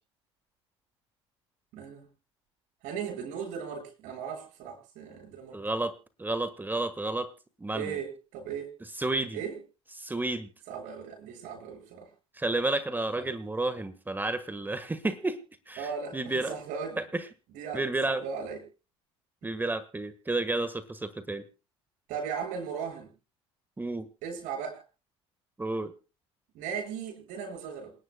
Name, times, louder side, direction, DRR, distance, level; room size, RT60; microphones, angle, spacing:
voice 1, 1.7-2.1 2.8-5.6 7.7-8.7 9.3-9.6 10.7-12.1 13.1-13.3 15.8-17.0 17.5-18.6 22.1-23.1 24.2-24.8 26.5-27.9, right 6 dB, 60° right, 2 dB, 7.8 m, -37 dB
voice 2, 5.5-7.3 7.6-8.0 9.0-9.4 10.0-10.5 12.4-15.4 15.7-16.6 17.0-17.2 17.7-18.2 19.4-21.4 23.8-24.1 25.6-25.9, right 2 dB, 15° right, 12 dB, 1.4 m, -31 dB
27.5 x 11.5 x 2.2 m, 0.32 s
hypercardioid pair, 70°, 15 cm